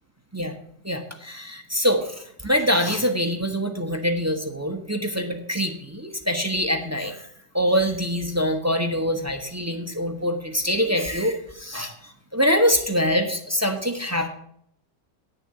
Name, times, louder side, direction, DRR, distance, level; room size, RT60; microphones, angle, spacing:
voice 1, 0.8-7.3 7.5-14.3, equal, 10° right, 4 dB, 0.8 m, -24 dB
8.7 x 6.7 x 7.6 m, 0.69 s
omnidirectional pair, 1.9 m